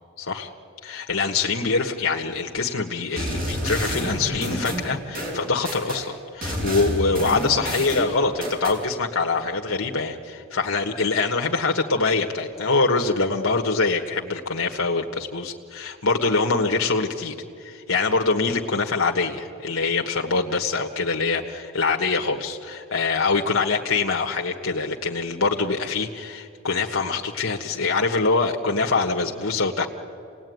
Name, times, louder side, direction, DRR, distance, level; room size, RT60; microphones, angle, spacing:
voice 1, 0.2-0.5 0.8-29.9, left 4 dB, 85° left, 1 dB, 1.4 m, -24 dB
sound 1, 3.2-6.0 6.4-8.8, right 1 dB, 45° right, 6.4 m, -29 dB
27.5 x 19.0 x 9.4 m, 2.5 s
head